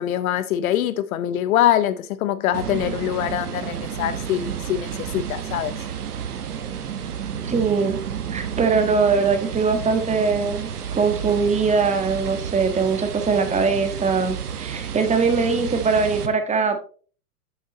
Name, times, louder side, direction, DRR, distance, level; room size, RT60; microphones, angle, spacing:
voice 1, 0.0-5.7, left 11 dB, 65° left, 0.7 m, -23 dB
sound 1, 2.5-16.3, right 8 dB, 85° right, 1.3 m, -31 dB
voice 2, 7.4-8.0 8.3-16.8, right 4 dB, 15° right, 1.5 m, -21 dB
8.3 x 8.0 x 3.0 m
hypercardioid pair, 110°, 45 cm